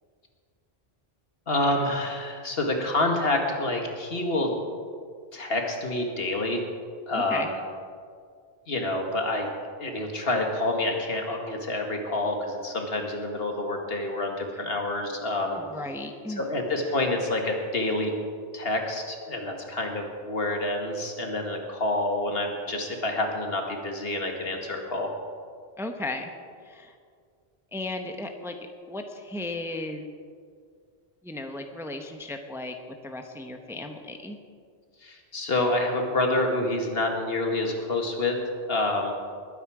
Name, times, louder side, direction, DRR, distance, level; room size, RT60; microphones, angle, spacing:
voice 1, 1.5-4.5 5.3-6.6 7.1-7.6 8.7-9.5 9.8-15.6 16.3-18.1 18.5-25.1 35.0-38.4 38.7-39.1, left 2 dB, 70° left, 2 dB, 1.9 m, -28 dB
voice 2, 7.1-7.5 15.6-16.4 25.8-26.3 26.6-26.9 27.7-30.1 31.2-32.8 33.0-34.4, left 2 dB, 5° right, 5 dB, 0.7 m, -35 dB
20.5 x 9.3 x 4.9 m, 2.1 s
omnidirectional pair, 1.0 m